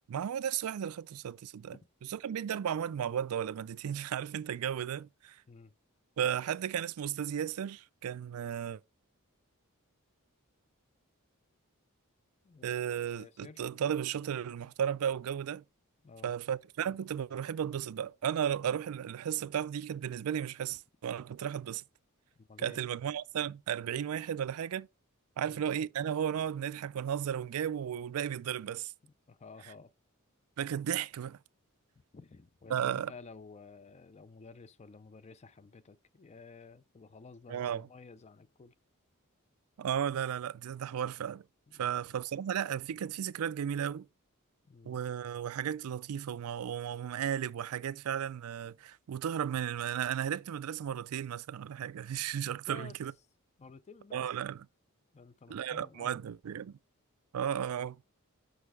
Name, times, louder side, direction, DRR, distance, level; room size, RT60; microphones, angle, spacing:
voice 1, 0.1-1.7 2.1-5.4 6.2-8.8 12.6-15.6 16.2-21.8 22.6-24.9 25.4-28.9 30.6-31.4 32.7-33.1 37.5-37.9 39.8-41.4 41.8-44.1 44.9-53.1 54.1-54.7 55.5-56.8 57.3-58.0, right 9 dB, 75° right, 0.4 m, -34 dB
voice 2, 12.4-13.6 16.0-16.3 22.4-22.8 25.4-25.6 29.0-29.9 32.1-38.7 41.7-42.0 44.6-45.0 52.7-53.0 53.6-54.3 55.1-56.2, left 4 dB, 30° left, 0.4 m, -53 dB
6.5 x 6.0 x 4.7 m
head